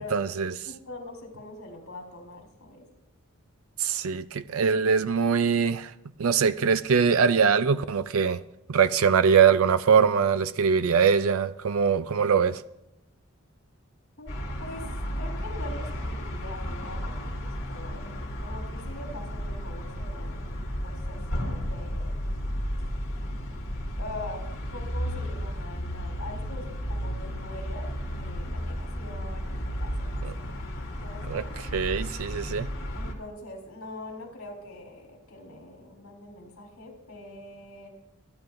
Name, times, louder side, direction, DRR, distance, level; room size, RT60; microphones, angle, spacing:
voice 1, 0.0-0.5 3.8-5.9 6.2-8.4 8.7-12.6 30.2-30.3 31.3-31.4 31.7-32.7, right 6 dB, 75° right, 0.5 m, -22 dB
voice 2, 0.6-2.9 14.2-14.3 14.6-14.9 15.2-20.5 20.8-22.4 24.0-31.4 32.9-37.9, left 2 dB, 80° left, 4.1 m, -43 dB
sound 1, 14.3-33.1, equal, 65° left, 3.4 m, -33 dB
28.5 x 10.5 x 2.6 m
head